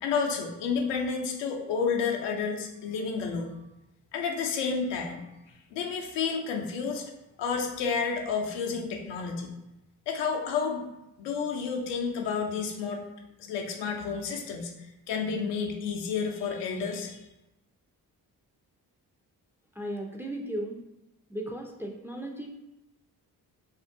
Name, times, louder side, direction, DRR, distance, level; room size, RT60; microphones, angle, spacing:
voice 1, 0.0-3.5 4.1-5.2 5.7-7.1 7.4-9.5 10.1-10.9 11.2-13.1 13.4-14.7 15.1-17.2, left 5 dB, 85° left, 2 dB, 0.5 m, -30 dB
voice 2, 19.8-20.8 21.3-22.5, right 1 dB, 5° right, 1 dB, 0.3 m, -36 dB
2.5 x 2.1 x 2.5 m, 0.93 s
supercardioid pair, 45°, 41 cm